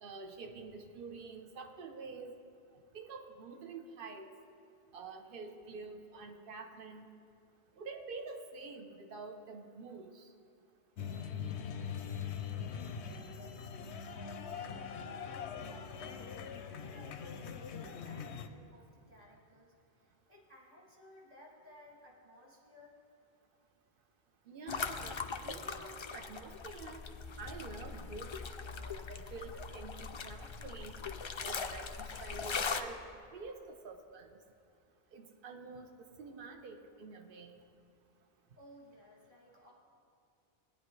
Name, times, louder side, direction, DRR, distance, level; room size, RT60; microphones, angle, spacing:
voice 1, 0.0-2.3 2.9-4.3 4.9-7.1 7.8-10.3 24.5-27.0 27.4-28.3 28.6-31.0 31.4-33.0 33.3-34.3 35.1-37.5, right 4 dB, 55° right, 5 dB, 1.0 m, -47 dB
sound 1, 11.0-18.5, left 7 dB, 90° left, 0.9 m, -42 dB
voice 2, 13.1-23.0 38.6-39.7, left 1 dB, 35° right, -5 dB, 2.8 m, -58 dB
sound 2, 24.7-32.8, left 5 dB, 50° left, 0.3 m, -40 dB
18.0 x 10.5 x 3.2 m, 2.4 s
omnidirectional pair, 1.1 m